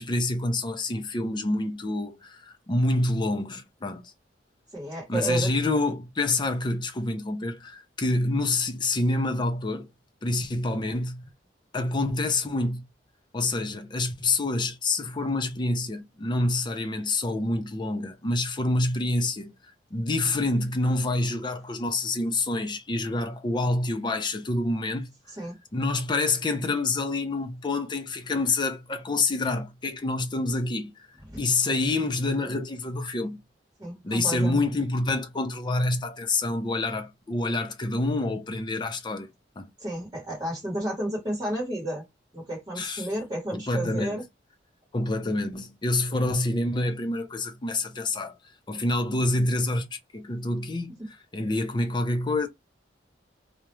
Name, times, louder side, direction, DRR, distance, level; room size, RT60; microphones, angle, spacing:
voice 1, 0.0-4.1 5.1-9.9 10.2-11.2 11.7-12.8 13.3-19.5 19.9-25.1 25.7-31.1 31.4-33.4 34.0-39.3 39.6-39.7 42.8-43.1 43.5-44.2 44.9-48.3 48.7-51.0 51.3-52.5, left 2 dB, 25° left, 0.5 m, -27 dB
voice 2, 4.7-5.5 25.3-25.6 31.3-31.4 33.8-34.7 39.8-42.0 42.3-44.2 51.0-51.1, right 1 dB, 25° right, 1.1 m, -32 dB
2.3 x 2.1 x 3.0 m
head